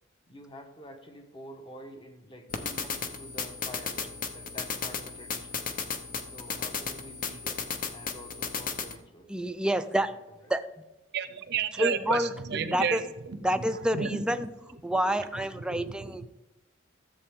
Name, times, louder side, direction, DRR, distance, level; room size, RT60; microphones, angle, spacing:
voice 1, 0.3-5.6 6.2-10.2, left 1 dB, 25° left, 4 dB, 1.1 m, -48 dB
sound 1, 2.5-9.0, left 5 dB, 40° left, 0.8 m, -35 dB
voice 2, 9.3-10.1 10.5-10.6 11.8-12.3 12.7-13.0 13.4-14.5 14.8-16.3, equal, 5° right, 9 dB, 0.4 m, -28 dB
voice 3, 11.1-13.4 13.9-14.2 15.1-15.2 15.7-16.3, right 6 dB, 55° right, 11 dB, 0.7 m, -32 dB
13.5 x 7.7 x 3.6 m, 1.1 s
head